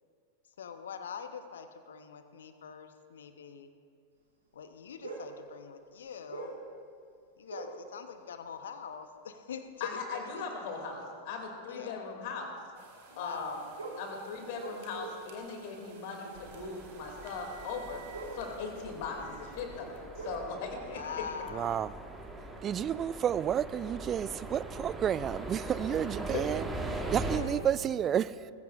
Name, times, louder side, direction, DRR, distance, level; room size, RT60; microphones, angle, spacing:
voice 1, 0.6-3.7 4.5-6.5 7.4-11.1 11.7-12.1 13.1-13.7 19.1-19.4 20.9-22.0, left 6 dB, 65° left, 0.9 m, -44 dB
sound 1, 5.0-5.5 6.0-6.7 7.5-7.9 9.0-9.1 9.6-9.8 11.6-11.7 13.8-15.4 15.7-15.8 18.1-19.4 19.7-22.0 22.2-22.5, right 3 dB, 75° right, 2.6 m, -43 dB
voice 2, 9.8-12.5 13.2-13.6 14.0-18.0 18.3-21.0 26.2-26.5 27.3-27.5, left 4 dB, 50° left, 2.5 m, -39 dB
sound 2, 12.7-19.8, right 6 dB, 50° right, 2.0 m, -55 dB
sound 3, 16.3-27.4, right 2 dB, 10° right, 1.4 m, -41 dB
voice 3, 21.5-21.9 22.6-26.6 26.9-28.5, right 9 dB, 25° right, 0.3 m, -31 dB
20.5 x 15.0 x 2.5 m
figure-of-eight pair, 90°, 0 cm